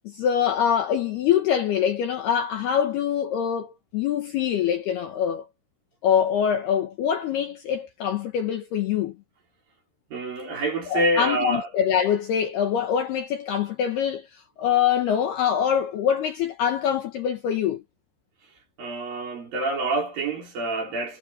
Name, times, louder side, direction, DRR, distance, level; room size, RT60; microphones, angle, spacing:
voice 1, 0.0-5.5 6.0-9.1 10.9-14.3 14.6-17.8, left 8 dB, 65° left, 2.8 m, -24 dB
voice 2, 10.1-11.7 18.8-21.2, right 1 dB, 45° right, 6.0 m, -27 dB
omnidirectional pair, 5.9 m